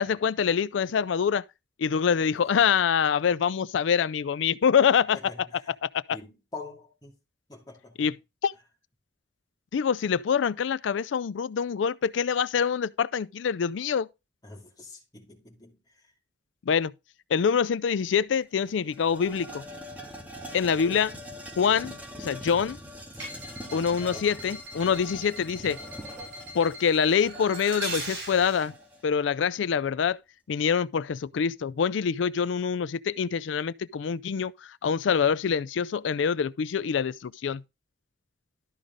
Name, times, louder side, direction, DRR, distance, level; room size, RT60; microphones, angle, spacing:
voice 1, 0.0-1.4 1.8-5.5 5.8-6.2 8.0-8.1 8.4-8.5 9.7-14.1 16.7-16.9 17.3-19.6 20.5-21.1 21.6-22.8 23.7-25.8 26.5-28.7 29.0-30.2 30.5-37.6, left 7 dB, 85° left, 0.4 m, -25 dB
voice 2, 2.0-2.7 5.1-5.7 6.1-7.2 7.5-8.2 14.4-16.1 20.6-21.0 23.7-24.3, left 3 dB, 20° left, 2.4 m, -46 dB
sound 1, 18.0-18.1 18.4-29.1, equal, 10° right, 1.8 m, -43 dB
sound 2, 23.1-28.7, right 2 dB, 70° right, 6.4 m, -40 dB
12.5 x 4.9 x 3.9 m
head